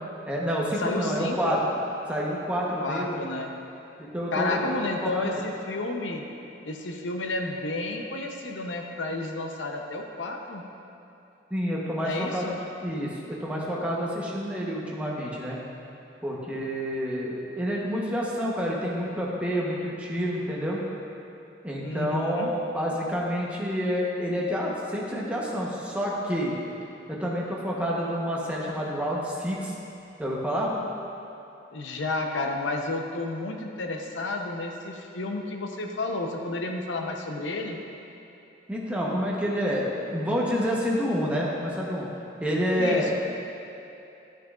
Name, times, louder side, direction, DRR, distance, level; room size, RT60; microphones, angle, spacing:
voice 1, 0.3-1.6 2.1-3.2 4.0-5.4 11.5-12.5 12.8-15.6 16.2-20.8 21.6-26.5 27.1-29.8 30.2-30.7 38.7-42.1 42.4-43.1, equal, 5° right, -5 dB, 0.9 m, -28 dB
voice 2, 0.8-1.6 2.8-3.5 4.3-6.3 6.6-10.6 12.0-12.6 21.8-22.5 31.7-37.8 42.8-43.1, left 2 dB, 80° left, 3 dB, 0.7 m, -31 dB
11.0 x 6.5 x 2.4 m, 2.8 s
head